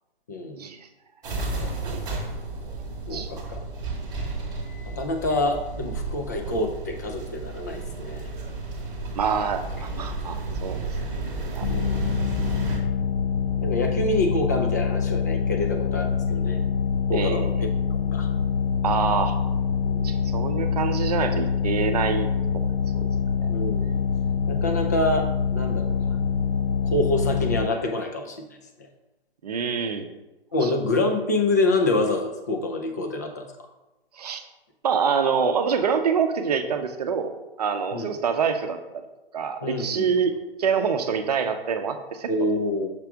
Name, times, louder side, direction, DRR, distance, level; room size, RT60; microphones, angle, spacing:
sound 1, 1.2-12.8, right 3 dB, 10° right, 1.1 m, -32 dB
voice 1, 3.1-3.6 4.9-8.3 11.7-12.0 13.6-16.6 17.1-18.3 19.9-20.1 23.5-24.0 24.5-26.1 26.8-28.5 30.5-33.5 37.9-38.1 39.6-40.2 42.3-42.9, left 2 dB, 20° left, 4 dB, 0.4 m, -27 dB
voice 2, 9.1-10.8 11.5-11.7 17.1-17.7 18.8-19.4 20.0-22.3 22.5-22.7 22.9-23.1 29.4-30.1 30.6-30.7 34.2-34.4 34.8-37.3 37.6-39.0 39.3-40.3 40.6-42.3, right 6 dB, 40° right, 7 dB, 0.7 m, -26 dB
sound 2, 11.6-27.7, left 6 dB, 80° left, 0.5 m, -25 dB
6.0 x 3.3 x 5.8 m, 1.0 s
figure-of-eight pair, 140°, 30 cm